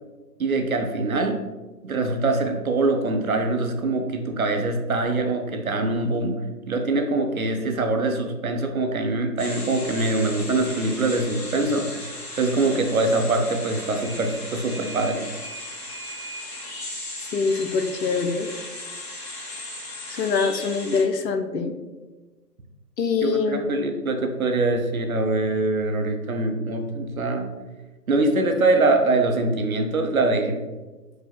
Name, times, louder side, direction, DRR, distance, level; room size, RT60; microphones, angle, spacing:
voice 1, 0.4-1.4 1.8-12.0 12.4-15.3 23.2-27.5 28.1-30.6, right 2 dB, 60° right, 5 dB, 0.7 m, -23 dB
sound 1, 9.4-21.0, left 1 dB, 40° left, 1.3 m, -36 dB
voice 2, 17.3-18.5 20.1-21.7 23.0-23.6, left 5 dB, 80° left, 6 dB, 0.7 m, -24 dB
4.8 x 2.1 x 4.3 m, 1.2 s
figure-of-eight pair, 155°, 49 cm